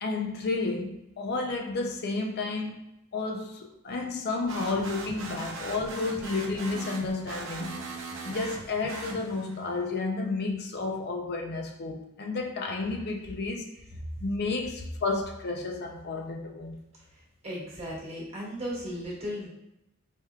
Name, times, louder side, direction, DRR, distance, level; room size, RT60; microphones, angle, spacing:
voice 1, 0.0-2.8 3.1-13.7 14.2-16.8, left 3 dB, 50° left, 0.5 m, -31 dB
sound 1, 4.5-9.7, right 3 dB, 60° right, 0.6 m, -39 dB
voice 2, 17.4-19.5, equal, 30° right, 1.2 m, -36 dB
4.5 x 3.4 x 2.3 m
head